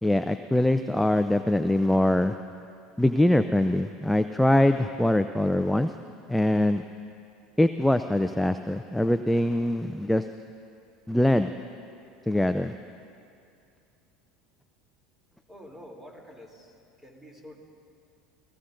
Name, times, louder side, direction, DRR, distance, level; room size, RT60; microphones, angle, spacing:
voice 1, 0.0-2.3 3.0-5.9 6.3-6.8 7.6-10.3 11.1-11.5 12.3-12.7, left 1 dB, 5° left, 9 dB, 0.4 m, -23 dB
voice 2, 15.5-17.6, equal, 15° right, 1 dB, 3.0 m, -48 dB
28.5 x 17.0 x 2.6 m, 2.5 s
hypercardioid pair, 75°, 2 cm